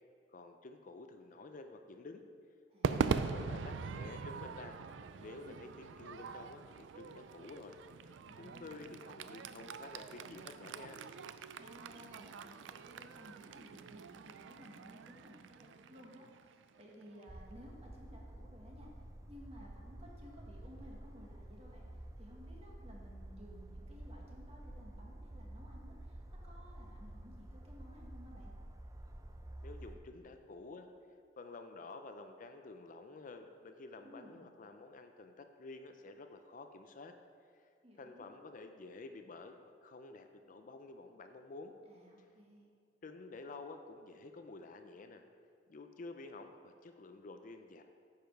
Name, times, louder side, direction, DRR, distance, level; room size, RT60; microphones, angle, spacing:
voice 1, 0.3-2.2 2.9-4.8 5.2-7.8 8.4-11.0 29.6-30.9 31.4-37.1 38.0-41.8 43.0-45.2 45.7-47.8, left 3 dB, 45° left, 6 dB, 0.5 m, -50 dB
voice 2, 2.7-3.4 5.4-5.7 8.2-8.9 11.6-18.9 19.3-28.5 34.0-34.4 37.8-38.3 41.8-42.7, equal, 35° right, -2 dB, 1.7 m, -57 dB
Crowd / Fireworks, 2.8-17.2, right 5 dB, 85° right, 0.4 m, -42 dB
sound 1, 17.3-30.0, right 1 dB, 20° right, 0.5 m, -50 dB
10.0 x 6.8 x 4.6 m, 2.2 s
head